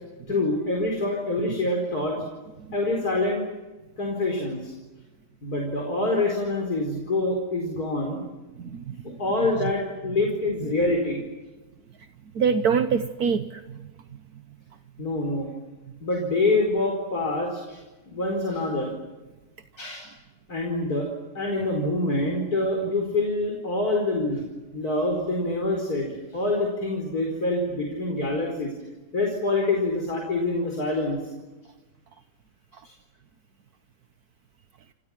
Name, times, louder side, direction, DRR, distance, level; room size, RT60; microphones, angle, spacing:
voice 1, 0.3-2.2 2.7-3.4 4.0-4.7 5.4-8.2 9.0-11.2 15.0-15.5 16.0-18.9 19.8-20.1 20.5-21.1 21.3-24.4 24.7-28.7 29.1-31.2, left 2 dB, 70° left, 1 dB, 5.1 m, -26 dB
voice 2, 8.6-9.2 9.6-9.7 12.0-12.1 12.3-14.2, right 6 dB, 70° right, 9 dB, 1.5 m, -26 dB
30.0 x 27.0 x 6.1 m, 1.2 s
omnidirectional pair, 1.7 m